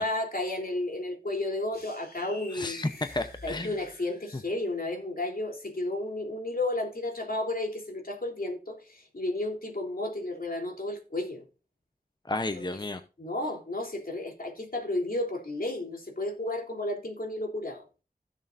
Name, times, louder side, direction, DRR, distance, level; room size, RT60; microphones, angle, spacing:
voice 1, 0.0-2.9 3.4-11.4 13.2-17.8, left 2 dB, 70° left, 3.4 m, -32 dB
sound 1, 1.7-4.6, left 2 dB, 85° left, 3.7 m, -48 dB
voice 2, 2.5-3.7 12.2-13.0, left 2 dB, 30° left, 0.8 m, -32 dB
16.0 x 6.6 x 2.6 m
wide cardioid pair, 50°, 16 cm